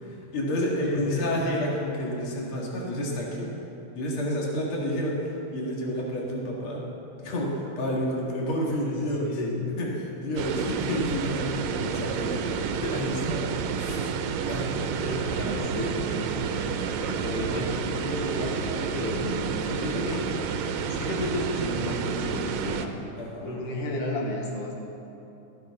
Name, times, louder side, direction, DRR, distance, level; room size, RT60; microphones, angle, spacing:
voice 1, 0.0-3.5 4.0-6.8 7.2-9.3 9.8-13.5 13.8-14.1 14.5-15.4 19.7-19.8 23.2-23.6, equal, 45° left, -3 dB, 2.6 m, -30 dB
voice 2, 0.9-1.4 8.9-9.7 15.0-20.3 20.9-23.0 23.4-24.7, left 2 dB, 85° left, -1 dB, 2.9 m, -33 dB
sound 1, 10.4-22.9, right 6 dB, 75° right, 1.7 m, -30 dB
16.0 x 13.0 x 3.8 m, 2.8 s
omnidirectional pair, 3.6 m